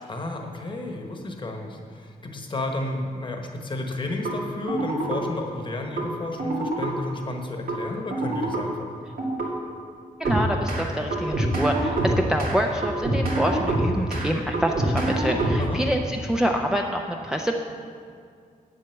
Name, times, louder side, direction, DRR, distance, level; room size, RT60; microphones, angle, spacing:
voice 1, 0.1-8.9 15.6-15.8, left 2 dB, 35° left, 3 dB, 1.1 m, -32 dB
sound 1, 4.2-4.3 4.7-5.2 6.0-6.1 6.4-6.9 7.7-7.8 8.1-8.6 9.2-9.5 10.2-10.8 11.1-12.5 12.8-14.3 14.5-15.8, right 2 dB, 85° right, 2.2 m, -25 dB
voice 2, 10.2-17.6, equal, 5° right, 1 dB, 0.5 m, -26 dB
8.7 x 7.6 x 7.0 m, 2.2 s
wide cardioid pair, 165°, 15 cm